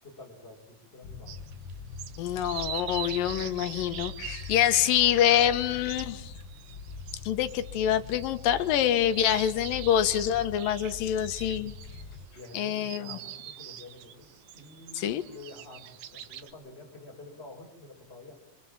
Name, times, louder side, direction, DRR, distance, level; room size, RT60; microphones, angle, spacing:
voice 1, 0.0-1.3 12.3-18.3, left 2 dB, 15° left, 0 dB, 5.3 m, -48 dB
sound 1, 1.0-12.3, left 5 dB, 60° left, 1.4 m, -43 dB
sound 2, 1.3-16.5, right 11 dB, 90° right, 3.0 m, -43 dB
voice 2, 2.2-6.3 7.2-11.7 12.5-13.2 14.9-15.2, left 10 dB, 85° left, 10 dB, 2.9 m, -26 dB
26.0 x 24.5 x 7.3 m, 0.86 s
omnidirectional pair, 4.0 m